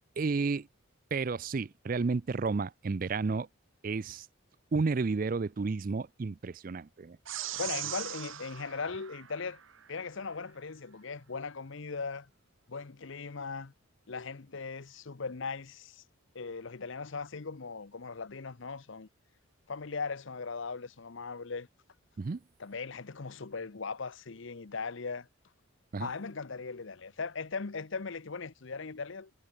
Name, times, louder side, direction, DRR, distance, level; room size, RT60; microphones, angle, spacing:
voice 1, 0.2-0.7 1.1-3.5 3.8-4.3 4.7-7.2 22.2-22.4 25.9-26.1, right 4 dB, 40° right, 0.4 m, -31 dB
sound 1, 7.3-9.9, right 12 dB, 70° right, 1.6 m, -40 dB
voice 2, 7.6-9.6 9.9-12.3 12.7-13.7 14.1-16.0 16.3-19.1 19.7-21.7 22.6-25.3 26.0-29.3, left 4 dB, 65° left, 0.8 m, -39 dB
head